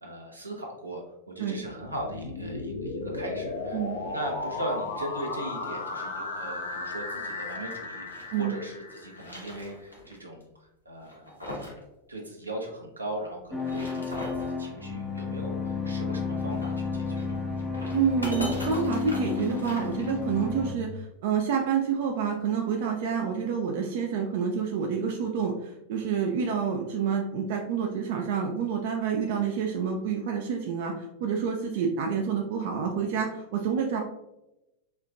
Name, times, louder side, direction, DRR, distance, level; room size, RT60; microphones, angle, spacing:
voice 1, 0.0-11.3 12.1-14.3 14.6-17.4, right 1 dB, 80° right, 0 dB, 0.9 m, -38 dB
sound 1, 1.7-9.6, left 3 dB, 65° left, 0.6 m, -35 dB
sound 2, 6.6-8.4 8.9-10.1 10.4-10.5 11.0-11.8 12.1-12.2 13.4-14.5 16.4-20.5, equal, 90° left, 1.1 m, -40 dB
sound 3, 13.5-20.8, left 5 dB, 5° left, 0.5 m, -32 dB
voice 2, 17.9-30.9 31.2-34.0, right 7 dB, 50° right, 2 dB, 0.4 m, -28 dB
4.4 x 3.3 x 2.5 m, 0.93 s
figure-of-eight pair, 90°, 0 cm